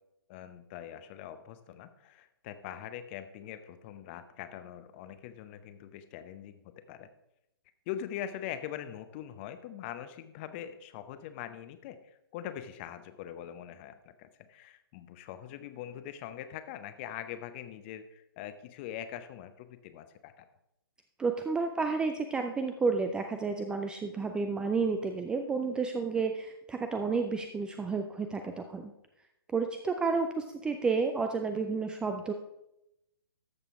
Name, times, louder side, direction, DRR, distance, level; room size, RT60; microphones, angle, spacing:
voice 1, 0.3-7.1 7.9-20.5, left 10 dB, 30° left, 11 dB, 0.7 m, -43 dB
voice 2, 21.2-28.9 29.5-32.3, right 4 dB, 5° right, 6 dB, 0.4 m, -31 dB
13.0 x 6.7 x 3.6 m, 0.85 s
figure-of-eight pair, 130°, 13 cm